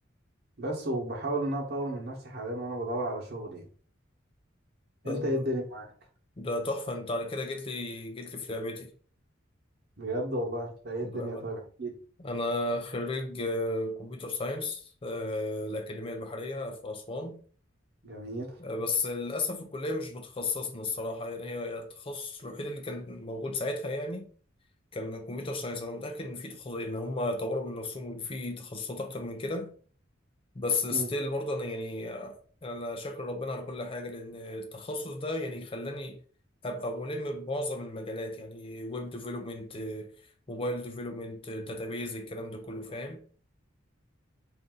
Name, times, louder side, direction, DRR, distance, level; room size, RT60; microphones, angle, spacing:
voice 1, 0.6-3.7 5.0-5.9 10.0-11.9 18.0-18.6 30.9-31.1, right 1 dB, 55° right, 1.1 m, -33 dB
voice 2, 5.0-5.5 6.4-8.9 11.0-11.5 12.2-17.4 18.6-24.3 24.9-29.7 30.5-36.2 36.6-40.1 40.5-43.2, left 2 dB, 30° left, 0.5 m, -34 dB
3.7 x 2.7 x 3.7 m
head